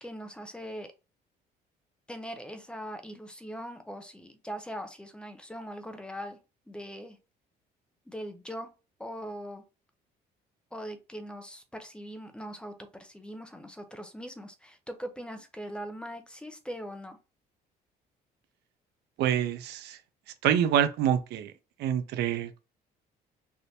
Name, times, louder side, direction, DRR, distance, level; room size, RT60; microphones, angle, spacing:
voice 1, 0.0-0.9 2.1-6.4 6.7-7.2 8.1-8.7 9.0-9.6 10.7-17.2, equal, 5° left, 0.6 m, -41 dB
voice 2, 19.2-20.0 20.4-21.5 21.8-22.6, right 9 dB, 80° right, 0.5 m, -26 dB
3.4 x 2.6 x 2.7 m
cardioid pair, 110°, 17 cm